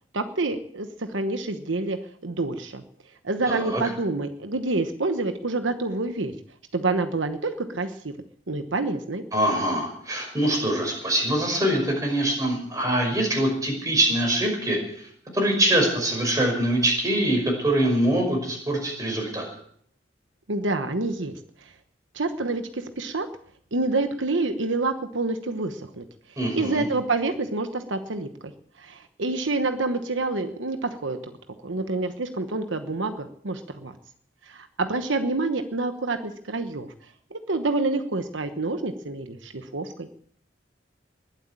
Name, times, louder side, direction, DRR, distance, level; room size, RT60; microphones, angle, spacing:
voice 1, 0.1-2.8 3.2-6.3 6.7-8.1 8.5-9.2 20.5-21.3 21.6-21.7 22.1-23.3 23.7-26.0 26.5-28.5 28.8-31.3 31.6-33.9 34.5-36.9 37.3-40.1, right 3 dB, 80° right, 8 dB, 1.1 m, -27 dB
voice 2, 3.5-3.8 9.3-19.5 26.4-26.8, right 1 dB, 20° right, 1 dB, 5.5 m, -24 dB
20.5 x 8.1 x 8.5 m, 0.63 s
head